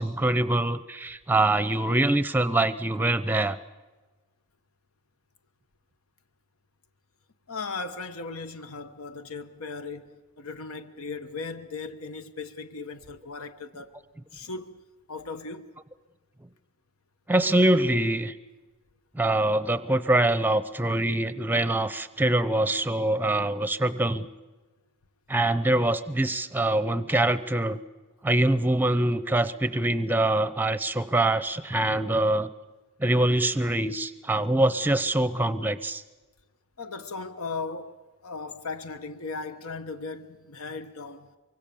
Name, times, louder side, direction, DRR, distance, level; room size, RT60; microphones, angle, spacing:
voice 1, 0.0-3.6 17.3-18.3 19.1-24.3 25.3-27.8 28.2-32.5 33.0-36.0, right 1 dB, 10° right, 0.7 m, -24 dB
voice 2, 7.5-13.9 14.3-14.7 15.1-15.6 36.8-38.0 38.2-41.3, left 4 dB, 80° left, 1.2 m, -37 dB
24.0 x 24.0 x 7.0 m
head